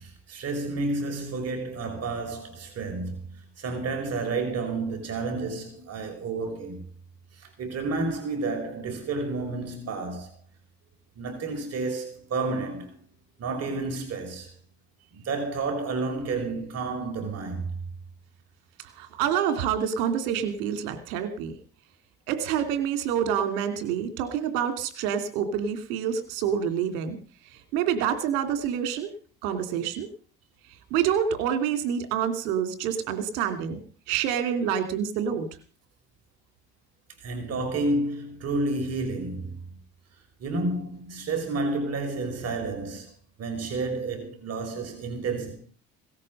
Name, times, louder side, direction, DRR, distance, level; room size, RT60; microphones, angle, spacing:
voice 1, 0.0-6.9 7.3-10.3 11.2-13.0 13.4-14.5 15.1-17.7 37.2-39.8 40.4-43.1 43.4-45.6, right 3 dB, 55° right, 5.7 m, -30 dB
voice 2, 19.0-21.5 22.3-27.2 27.7-29.1 29.4-30.1 30.9-33.8 34.1-35.5, right 8 dB, 85° right, 2.9 m, -27 dB
18.0 x 13.5 x 5.4 m
supercardioid pair, 85°, 30 cm